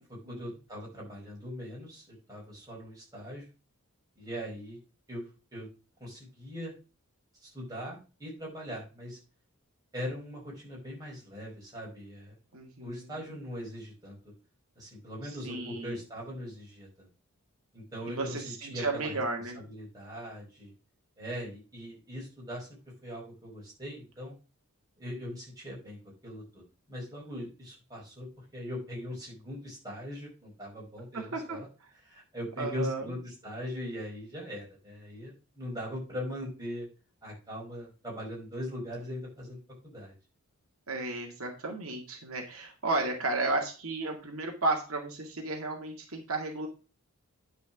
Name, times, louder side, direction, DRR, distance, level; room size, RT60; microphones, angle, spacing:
voice 1, 0.1-3.5 4.2-4.8 5.1-5.2 5.5-5.7 6.0-6.7 7.4-9.2 9.9-12.3 12.8-14.2 14.8-17.1 17.7-19.2 19.6-20.7 21.2-22.7 23.0-24.3 25.0-26.0 26.2-26.6 26.9-31.7 32.0-36.9 37.2-39.6 39.8-40.1, equal, 15° right, -4 dB, 5.3 m, -40 dB
voice 2, 12.5-13.0 15.2-16.0 18.1-19.6 31.1-31.6 32.6-33.0 40.9-46.7, right 2 dB, 75° right, 2 dB, 2.1 m, -33 dB
10.0 x 5.0 x 5.9 m, 0.33 s
head